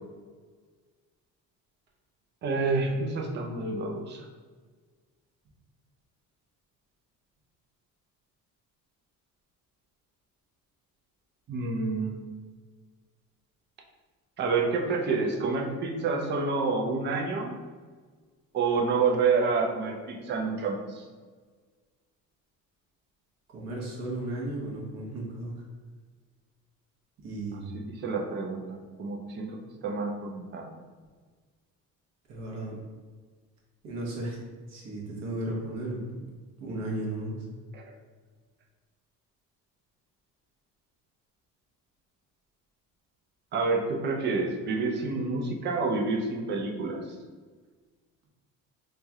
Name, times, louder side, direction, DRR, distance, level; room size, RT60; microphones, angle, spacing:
voice 1, 2.4-4.3 11.5-12.2 14.4-17.5 18.5-21.0 27.7-30.7 37.7-37.8 43.5-47.0, right 4 dB, 30° right, 0 dB, 0.5 m, -28 dB
voice 2, 23.5-25.6 27.2-27.9 32.3-32.8 33.8-34.4 34.7-36.0 36.6-37.3, right 1 dB, 50° right, -3 dB, 1.0 m, -35 dB
3.2 x 2.4 x 4.0 m, 1.5 s
cardioid pair, 165°, 34 cm